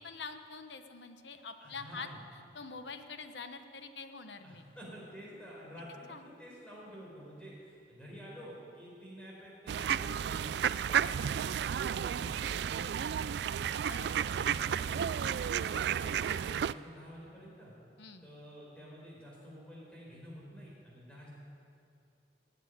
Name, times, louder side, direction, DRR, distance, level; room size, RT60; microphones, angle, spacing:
voice 1, 0.0-2.1 2.5-4.7 6.1-6.3 13.8-14.4 18.0-18.3, left 4 dB, 85° left, 8 dB, 1.0 m, -45 dB
voice 2, 1.6-2.2 4.4-13.5 14.2-17.7 18.2-21.3, equal, 5° left, -5 dB, 4.7 m, -50 dB
sound 1, 9.7-16.7, right 8 dB, 70° right, 0.3 m, -32 dB
18.0 x 8.4 x 9.7 m, 2.5 s
head